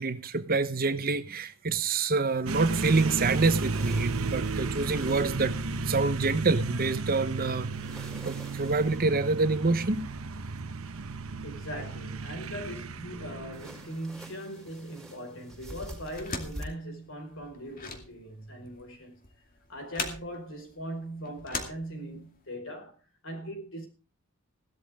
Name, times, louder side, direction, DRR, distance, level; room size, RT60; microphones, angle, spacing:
voice 1, 0.0-5.6 5.9-10.0, right 3 dB, 45° right, 1.0 m, -27 dB
sound 1, 2.5-14.2, right 3 dB, 75° right, 1.0 m, -34 dB
sound 2, 2.7-5.8 7.7-9.2 13.5-16.6, right 1 dB, ahead, 5.1 m, -47 dB
voice 2, 11.4-19.1 19.7-23.0 23.2-23.9, right 1 dB, 65° left, 4.9 m, -40 dB
sound 3, 16.1-22.4, left 4 dB, 40° left, 2.4 m, -40 dB
16.5 x 12.5 x 3.6 m
head